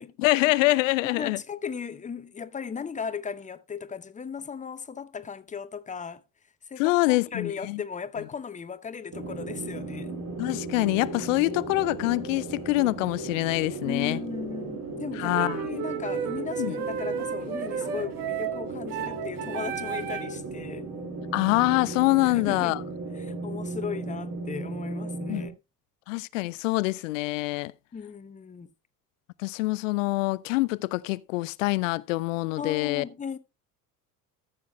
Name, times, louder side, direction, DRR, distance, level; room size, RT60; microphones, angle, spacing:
voice 1, 0.2-1.4 6.8-7.8 10.4-14.2 15.2-15.6 16.6-16.8 21.3-22.8 25.3-25.4 26.1-27.7 29.4-33.0, left 21 dB, 55° left, 0.5 m, -25 dB
voice 2, 1.0-6.2 6.7-10.1 13.8-20.9 22.2-22.8 23.1-25.5 27.9-28.7 32.6-33.4, left 6 dB, 15° left, 0.8 m, -36 dB
sound 1, 9.1-25.5, right 3 dB, 35° right, 2.6 m, -36 dB
sound 2, 15.3-20.4, right 8 dB, 65° right, 1.3 m, -33 dB
14.0 x 7.3 x 3.3 m
figure-of-eight pair, 65°, 48 cm